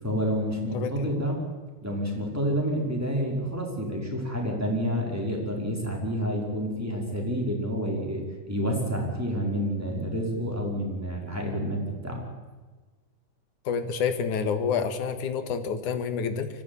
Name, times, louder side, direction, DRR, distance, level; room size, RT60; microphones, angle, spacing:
voice 1, 0.0-1.4 1.8-12.2, equal, 5° right, 0 dB, 5.1 m, -29 dB
voice 2, 0.7-1.1 13.7-16.5, left 6 dB, 80° left, 8 dB, 3.1 m, -28 dB
25.0 x 15.5 x 9.9 m, 1.3 s
omnidirectional pair, 3.5 m